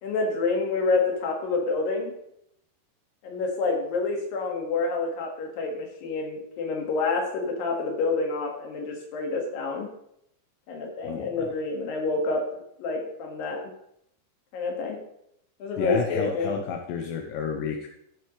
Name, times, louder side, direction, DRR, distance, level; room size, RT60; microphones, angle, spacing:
voice 1, 0.0-2.1 3.2-9.9 10.7-13.6 14.5-15.0 15.6-16.6, left 3 dB, 60° left, 1 dB, 3.2 m, -28 dB
voice 2, 11.1-11.5 15.8-17.9, left 7 dB, 80° left, 3 dB, 3.0 m, -31 dB
14.5 x 7.8 x 3.2 m, 0.75 s
omnidirectional pair, 5.2 m